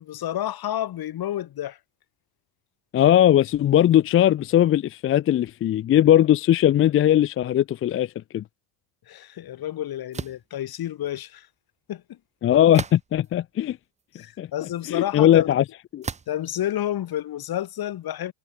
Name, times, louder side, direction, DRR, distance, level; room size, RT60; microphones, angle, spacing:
voice 1, 0.0-1.8 9.1-11.5 11.9-12.2 14.1-15.5 16.3-18.3, left 12 dB, 50° left, 5.2 m, -30 dB
voice 2, 2.9-8.4 12.4-13.8 14.4-14.5 14.9-15.6 15.9-16.1, left 11 dB, 30° left, 0.5 m, -19 dB
sound 1, 10.1-10.5 12.7-13.3 14.0-14.1 16.0-16.4, right 5 dB, 15° right, 0.6 m, -33 dB
supercardioid pair, 90°, 47 cm